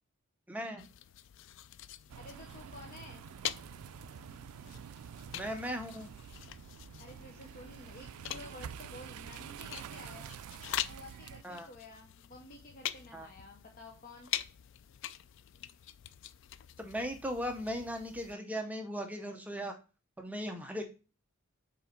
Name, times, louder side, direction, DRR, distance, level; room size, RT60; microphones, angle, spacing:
voice 1, 0.5-0.9 5.3-6.1 11.4-11.7 13.1-13.3 16.8-19.8 20.2-20.8, equal, 5° right, 5 dB, 0.6 m, -38 dB
sound 1, 0.8-18.3, left 12 dB, 55° left, 0.3 m, -44 dB
voice 2, 2.1-3.3 7.0-10.3 10.9-14.3, left 2 dB, 40° left, 2 dB, 0.7 m, -51 dB
sound 2, 2.1-11.4, right 8 dB, 80° right, 0.3 m, -48 dB
5.6 x 4.3 x 5.0 m, 0.34 s
head